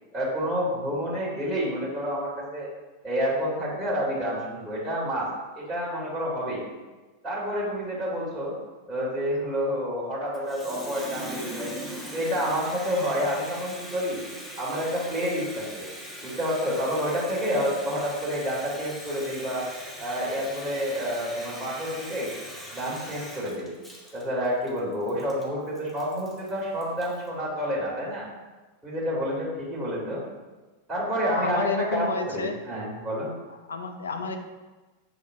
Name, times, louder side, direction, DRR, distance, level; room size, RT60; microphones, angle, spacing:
voice 1, 0.1-2.7 3.0-5.3 5.5-6.6 7.2-8.5 8.9-11.7 12.1-14.2 14.6-15.9 16.2-19.6 20.0-22.3 22.7-23.7 24.1-28.3 28.8-30.2 30.9-33.3, equal, 15° right, -8 dB, 1.3 m, -29 dB
Water tap faucet, 10.3-27.3, equal, 10° left, 0.7 m, -40 dB
voice 2, 31.3-32.6 33.7-34.4, left 3 dB, 70° left, 6 dB, 0.4 m, -30 dB
6.4 x 2.4 x 2.5 m, 1.2 s
figure-of-eight pair, 90°, 0 cm